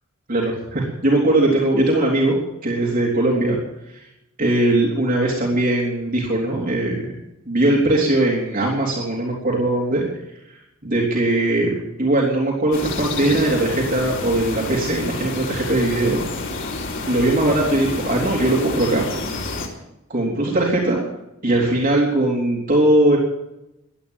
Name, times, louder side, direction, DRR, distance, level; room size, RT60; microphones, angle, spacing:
voice 1, 0.3-3.6 3.9-4.0 4.4-7.1 7.4-10.0 10.8-16.2 17.1-19.0 20.1-21.0 21.4-23.2, right 1 dB, 45° right, -2 dB, 3.3 m, -20 dB
sound 1, 12.7-19.7, left 3 dB, 60° left, 3.5 m, -29 dB
16.0 x 12.0 x 7.2 m, 0.88 s
head